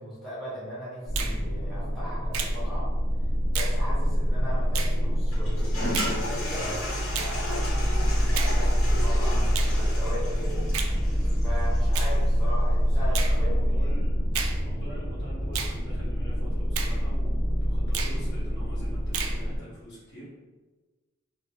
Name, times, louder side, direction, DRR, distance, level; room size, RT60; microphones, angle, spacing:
voice 1, 0.0-2.9 3.5-10.6 11.4-13.9, equal, ahead, -9 dB, 0.7 m, -38 dB
sound 1, 1.1-19.6, equal, 25° left, 1.1 m, -26 dB
Finger snapping, 1.2-1.4 2.3-2.6 3.6-3.8 4.7-5.0 5.9-6.2 7.1-7.4 8.4-8.6 9.6-9.8 10.7-11.0 11.9-12.1 13.1-13.4 14.3-14.6 15.5-15.8 16.8-17.0 17.9-18.2 19.1-19.4, right 7 dB, 80° right, 0.3 m, -32 dB
Toilet flush, 5.3-12.2, left 1 dB, 80° left, 0.9 m, -36 dB
voice 2, 12.9-14.1 14.6-20.3, equal, 50° left, -7 dB, 1.2 m, -45 dB
2.6 x 2.0 x 3.6 m, 1.3 s
head